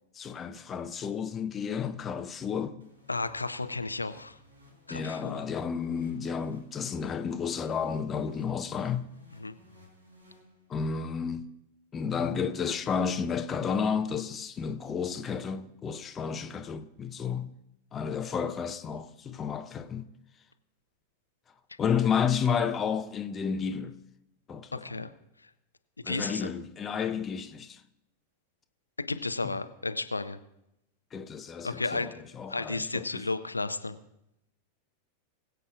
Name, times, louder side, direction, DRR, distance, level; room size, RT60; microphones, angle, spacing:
voice 1, 0.1-2.8 4.9-9.1 10.7-11.5 11.9-17.5 17.9-20.1 21.8-24.0 24.5-25.0 26.0-27.8 29.4-29.6 31.1-33.2, left 6 dB, 20° left, 0.6 m, -32 dB
sound 1, 2.8-11.0, left 1 dB, 75° right, 3.4 m, -57 dB
voice 2, 3.1-4.4 4.9-5.5 9.4-9.5 24.7-25.1 26.1-26.5 29.0-30.4 31.6-32.1 32.5-34.0, left 3 dB, 80° left, 0.5 m, -33 dB
21.5 x 7.9 x 2.4 m
figure-of-eight pair, 90°, 0 cm